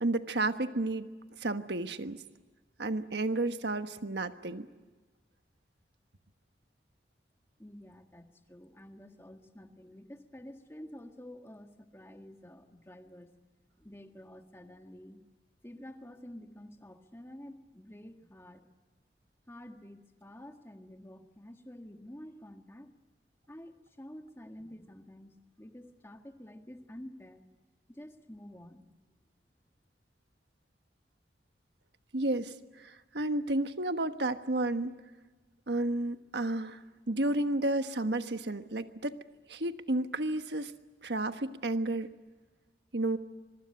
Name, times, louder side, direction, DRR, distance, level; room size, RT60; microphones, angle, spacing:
voice 1, 0.0-1.1 1.4-2.2 2.8-4.7 32.1-32.5 32.8-35.0 35.7-36.8 37.1-39.2 39.5-40.7 41.0-42.1 42.9-43.2, right 2 dB, 75° right, 9 dB, 1.3 m, -31 dB
voice 2, 7.6-13.3 13.8-15.2 15.6-18.6 19.5-22.9 23.5-27.4 27.9-28.9, left 1 dB, 15° left, 5 dB, 1.7 m, -49 dB
25.0 x 23.5 x 9.9 m, 1.3 s
head